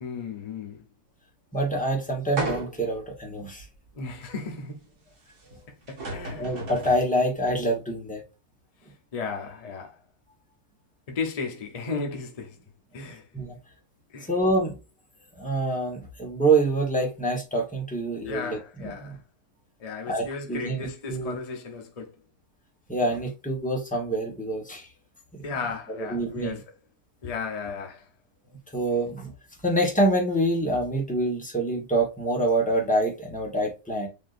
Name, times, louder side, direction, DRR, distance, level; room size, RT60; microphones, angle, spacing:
voice 1, 0.0-0.8 3.9-4.8 5.9-6.5 9.1-9.9 11.1-12.6 12.9-13.2 14.1-14.3 18.3-19.2 19.8-22.1 25.4-26.6 27.2-28.0, left 4 dB, 70° left, 0.3 m, -34 dB
voice 2, 1.5-3.6 5.5-5.6 6.4-8.2 13.0-13.6 14.3-14.8 15.3-19.2 20.1-21.4 22.9-24.9 25.3-25.4 25.9-26.6 28.7-29.3 29.6-34.1, right 1 dB, 5° left, 0.8 m, -26 dB
sound 1, 2.4-3.0 3.6-3.7 5.5-5.6 5.9-7.1, right 2 dB, 60° right, 1.9 m, -33 dB
7.0 x 2.7 x 2.5 m
omnidirectional pair, 2.0 m